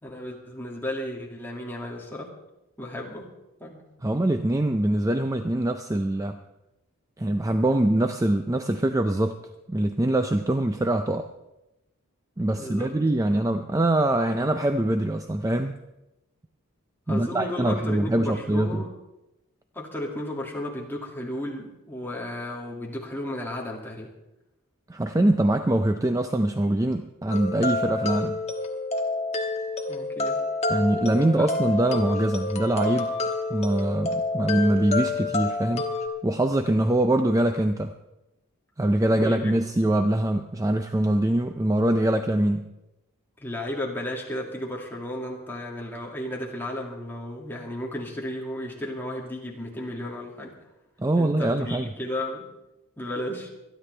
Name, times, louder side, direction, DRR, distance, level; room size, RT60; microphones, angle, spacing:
voice 1, 0.0-2.3 2.8-3.3 3.6-3.8 12.4-12.9 17.1-18.9 19.7-24.1 29.9-30.4 31.4-31.5 39.1-39.5 43.4-50.5 51.2-52.5 53.0-53.5, left 1 dB, 10° left, -3 dB, 2.1 m, -34 dB
voice 2, 4.0-6.4 7.2-9.4 9.7-11.3 12.4-15.8 17.1-18.8 24.9-28.4 30.7-33.1 33.5-35.8 36.2-37.9 38.8-42.6 51.0-51.9, right 1 dB, 15° right, 7 dB, 0.4 m, -23 dB
sound 1, 27.3-36.1, left 3 dB, 30° left, 1.3 m, -28 dB
25.5 x 10.0 x 3.3 m, 0.95 s
head